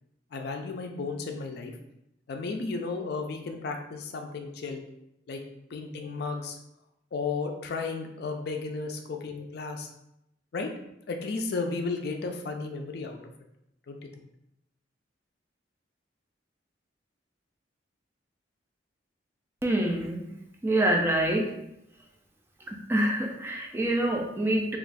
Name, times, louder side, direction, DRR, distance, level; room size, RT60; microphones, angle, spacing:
voice 1, 0.3-1.7 2.3-4.8 5.3-5.4 5.7-6.6 7.1-9.9 10.5-10.7 11.1-13.2 13.9-14.2, left 4 dB, 60° left, 4 dB, 0.4 m, -34 dB
voice 2, 19.6-20.3 20.6-21.5 22.7-24.8, right 1 dB, 10° right, 1 dB, 0.3 m, -26 dB
2.4 x 2.3 x 4.0 m, 0.82 s
head